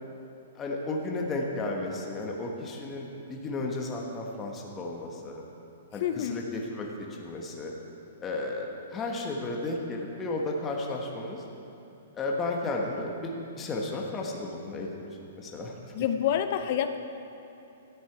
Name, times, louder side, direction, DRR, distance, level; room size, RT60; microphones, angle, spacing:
voice 1, 0.5-5.4 5.9-7.7 8.2-11.4 12.1-15.1 15.3-15.8, left 2 dB, 20° left, -1 dB, 1.2 m, -33 dB
voice 2, 6.0-6.4 15.9-17.0, left 9 dB, 50° left, 9 dB, 0.6 m, -27 dB
13.0 x 9.3 x 4.6 m, 2.9 s
hypercardioid pair, 140°, 0 cm